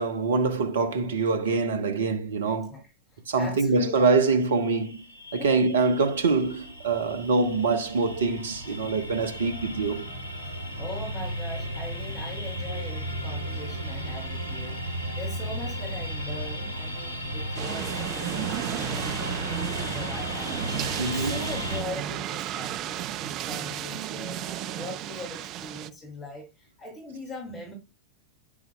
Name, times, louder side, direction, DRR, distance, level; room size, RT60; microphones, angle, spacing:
voice 1, 0.0-2.8 3.3-5.0 5.3-10.1 21.0-21.4, right 4 dB, 65° right, 1.1 m, -24 dB
voice 2, 2.7-4.0 5.4-5.6 10.4-14.8 15.1-27.7, left 2 dB, 25° left, 5.2 m, -41 dB
sound 1, 4.4-21.8, equal, 85° left, 2.1 m, -35 dB
sound 2, 17.6-25.9, right 12 dB, 35° right, 0.5 m, -33 dB
9.6 x 8.4 x 2.3 m
figure-of-eight pair, 90°, 0 cm